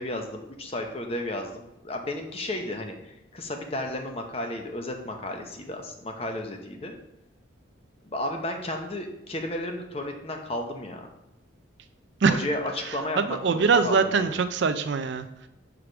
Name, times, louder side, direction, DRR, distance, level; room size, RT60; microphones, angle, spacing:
voice 1, 0.0-7.0 8.0-11.1 12.3-14.4, left 1 dB, 30° left, 3 dB, 0.8 m, -33 dB
voice 2, 13.2-15.5, right 5 dB, 60° right, 10 dB, 0.4 m, -23 dB
4.9 x 4.8 x 6.0 m, 0.91 s
head